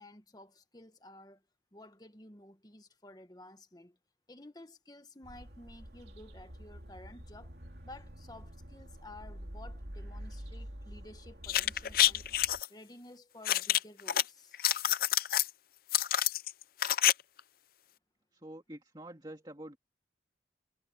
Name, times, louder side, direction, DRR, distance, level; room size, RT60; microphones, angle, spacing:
voice 1, 0.0-1.4 1.7-4.0 4.3-7.5 7.8-12.2 12.7-14.6, left 1 dB, 20° left, 1.5 m, -53 dB
sound 1, 5.2-12.6, equal, 60° right, 3.1 m, -47 dB
sound 2, 11.4-12.7 13.5-14.2 14.5-15.5 15.9-17.1 17.4-17.5, left 13 dB, 50° left, 0.5 m, -27 dB
voice 2, 18.3-19.8, right 1 dB, 25° right, 2.5 m, -47 dB
head